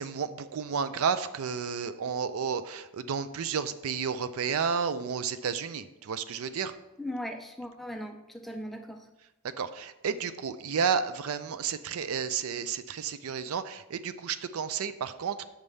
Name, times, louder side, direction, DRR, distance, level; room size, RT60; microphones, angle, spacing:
voice 1, 0.0-6.7 9.6-15.4, right 6 dB, 65° right, 12 dB, 0.4 m, -31 dB
voice 2, 7.0-9.0, equal, ahead, 4 dB, 0.4 m, -38 dB
7.3 x 5.4 x 3.3 m, 0.97 s
head